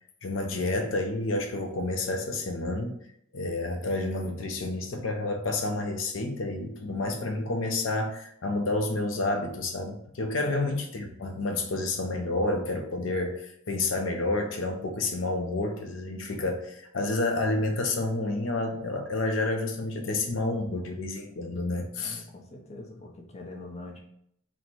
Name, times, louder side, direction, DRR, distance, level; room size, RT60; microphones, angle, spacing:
voice 1, 0.2-3.0 3.3-22.2, left 2 dB, 75° left, 3 dB, 0.5 m, -29 dB
voice 2, 20.0-21.0 21.9-24.0, left 2 dB, 35° left, 0 dB, 0.7 m, -45 dB
4.1 x 2.1 x 4.4 m, 0.70 s
head